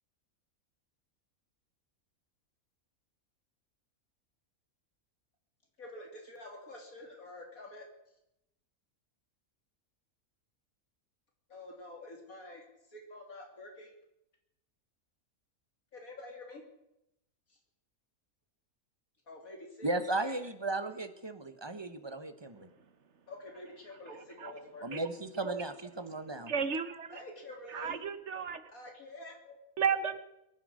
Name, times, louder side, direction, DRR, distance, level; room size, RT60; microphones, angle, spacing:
voice 1, 5.8-7.9 11.5-13.9 15.9-16.6 17.5-17.6 19.3-19.9 20.2-20.3 23.3-25.0 27.1-28.0 28.7-29.6, left 2 dB, 70° left, 2 dB, 3.6 m, -48 dB
voice 2, 19.8-22.7 24.8-26.5, right 2 dB, 20° right, 10 dB, 0.9 m, -36 dB
voice 3, 26.5-27.1 27.7-28.6 29.8-30.2, right 6 dB, 55° right, 11 dB, 1.3 m, -33 dB
22.0 x 10.0 x 6.4 m, 0.86 s
omnidirectional pair, 1.5 m